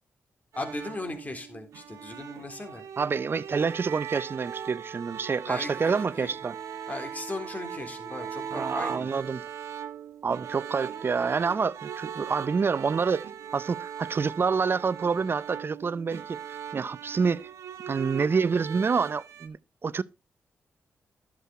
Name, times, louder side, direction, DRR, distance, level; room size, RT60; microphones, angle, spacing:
voice 1, 0.5-2.8 5.5-5.7 6.1-6.3 6.9-9.1, left 2 dB, 30° left, 3.9 m, -37 dB
sound 1, 0.5-19.5, right 8 dB, 80° right, 1.1 m, -40 dB
voice 2, 3.0-6.6 8.5-9.4 10.2-13.2 13.5-16.4 16.7-17.5 17.9-20.0, right 5 dB, 50° right, 0.6 m, -27 dB
12.5 x 7.6 x 4.2 m
supercardioid pair, 50°, 5 cm